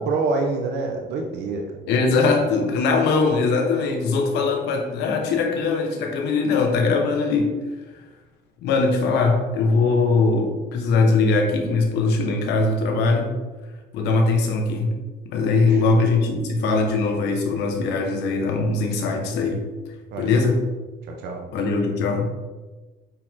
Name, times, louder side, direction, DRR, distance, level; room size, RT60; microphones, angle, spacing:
voice 1, 0.0-1.6 15.6-16.0 20.1-20.5 21.1-21.4, right 3 dB, 75° right, 2 dB, 1.2 m, -27 dB
voice 2, 1.9-7.5 8.6-13.3 13.9-14.9 15.2-19.6 20.2-20.6 21.5-22.3, left 3 dB, 85° left, 3 dB, 1.5 m, -21 dB
8.6 x 5.1 x 3.8 m, 1.2 s
cardioid pair, 110°, 17 cm